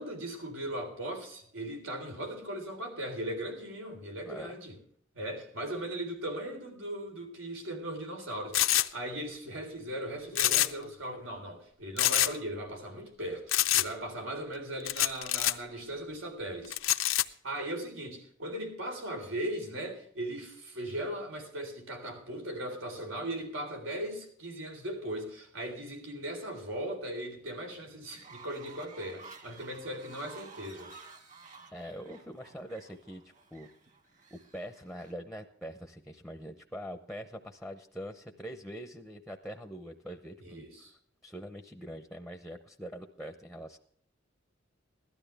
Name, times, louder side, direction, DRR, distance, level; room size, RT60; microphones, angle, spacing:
voice 1, 0.0-4.8 5.1-17.1 17.4-30.9 40.4-40.9, right 1 dB, 85° right, 4 dB, 3.8 m, -38 dB
sound 1, 8.5-8.9 10.3-10.9 11.1-11.2 12.0-12.3 13.5-13.9 14.9-15.5 16.7-17.2, left 15 dB, 85° left, 0.6 m, -26 dB
Fowl, 28.1-35.1, right 4 dB, 40° right, 1.7 m, -52 dB
voice 2, 31.7-33.7 34.3-40.7 41.2-43.8, equal, ahead, 6 dB, 0.7 m, -43 dB
17.0 x 12.5 x 3.4 m, 0.64 s
head